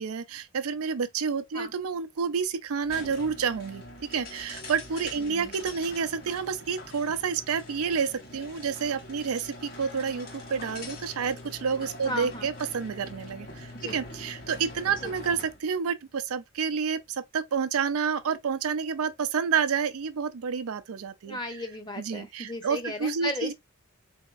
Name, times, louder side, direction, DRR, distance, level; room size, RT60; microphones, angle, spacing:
voice 1, 0.0-3.8 4.1-21.4 22.0-23.5, right 6 dB, 75° right, 0.5 m, -29 dB
sound 1, 2.8-15.6, left 2 dB, 40° left, 1.6 m, -43 dB
voice 2, 5.2-5.5 12.0-12.5 13.7-14.0 15.0-15.1 21.3-23.5, left 1 dB, 20° left, 0.8 m, -35 dB
3.8 x 3.5 x 2.4 m
head